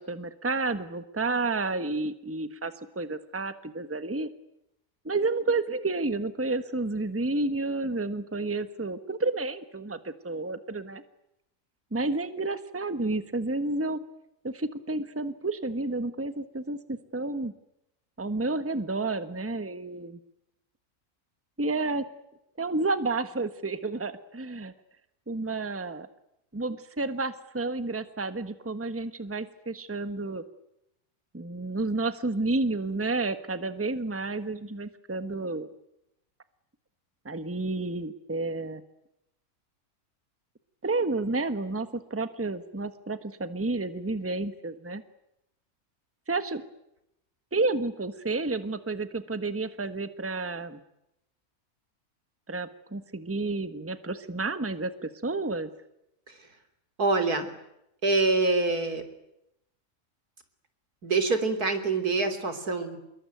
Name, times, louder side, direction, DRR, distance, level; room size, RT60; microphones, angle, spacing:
voice 1, 0.0-4.3 5.0-11.0 11.9-14.0 14.4-17.5 18.2-20.2 21.6-22.0 22.6-24.7 25.3-26.1 26.5-30.4 31.3-35.7 37.2-38.8 40.8-45.0 46.3-46.6 47.5-50.8 52.5-55.7, right 3 dB, 10° right, 11 dB, 1.2 m, -30 dB
voice 2, 57.0-57.5 58.0-59.0 61.0-63.0, right 3 dB, 90° right, 8 dB, 3.8 m, -25 dB
26.5 x 22.0 x 9.3 m, 0.83 s
omnidirectional pair, 1.6 m